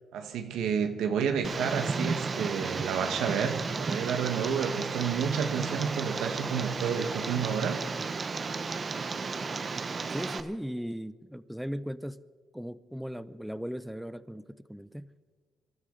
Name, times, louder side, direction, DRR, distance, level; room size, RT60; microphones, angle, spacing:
voice 1, 0.1-7.8, right 7 dB, 85° right, 5 dB, 1.4 m, -30 dB
Tick, 1.4-10.4, right 4 dB, 35° right, 0.9 m, -33 dB
voice 2, 10.1-12.2 12.5-14.4 14.7-15.1, equal, ahead, 14 dB, 0.6 m, -37 dB
26.0 x 13.0 x 3.9 m, 1.5 s
cardioid pair, 90°, 0 cm